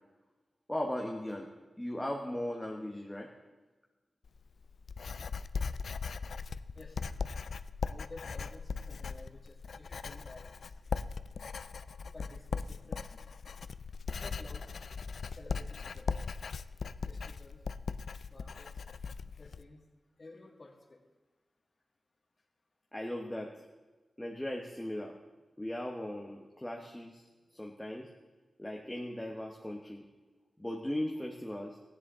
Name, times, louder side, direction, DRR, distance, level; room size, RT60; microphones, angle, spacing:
voice 1, 0.7-1.5 1.8-3.3 22.9-23.6 24.2-25.2 25.6-28.1 28.6-30.0 30.6-31.8, left 1 dB, 10° left, 0 dB, 1.0 m, -38 dB
Writing, 4.2-19.6, left 5 dB, 80° left, 0.3 m, -39 dB
voice 2, 6.7-7.1 7.9-10.8 12.1-13.3 14.1-14.8 15.3-16.2 17.0-17.6 18.3-18.9 19.4-19.9 20.2-21.0, left 2 dB, 45° left, -1 dB, 2.0 m, -53 dB
15.0 x 9.9 x 3.7 m, 1.3 s
cardioid pair, 70°, 0 cm